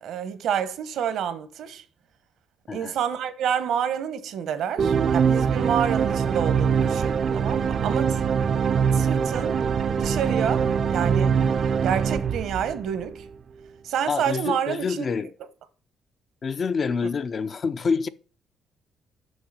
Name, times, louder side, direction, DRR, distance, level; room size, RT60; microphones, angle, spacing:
voice 1, 0.0-1.8 2.7-8.2 8.9-9.6 10.0-11.3 11.8-13.3 13.8-15.1, right 8 dB, 80° right, 0.9 m, -28 dB
sound 1, 4.8-13.2, right 6 dB, 55° right, 0.5 m, -23 dB
voice 2, 14.1-15.3 16.4-18.1, left 5 dB, 45° left, 0.5 m, -27 dB
6.4 x 5.7 x 6.4 m
cardioid pair, 90°, 0 cm